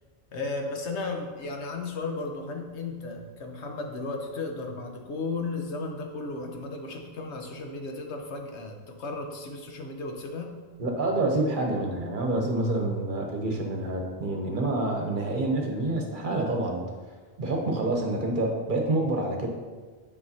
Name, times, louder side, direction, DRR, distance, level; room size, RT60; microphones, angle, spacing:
voice 1, 0.3-10.5 17.4-17.9, left 3 dB, 85° left, 3 dB, 1.2 m, -35 dB
voice 2, 10.8-16.8 17.4-19.5, right 2 dB, 50° right, 1 dB, 1.1 m, -27 dB
9.4 x 5.2 x 2.8 m, 1.4 s
omnidirectional pair, 1.1 m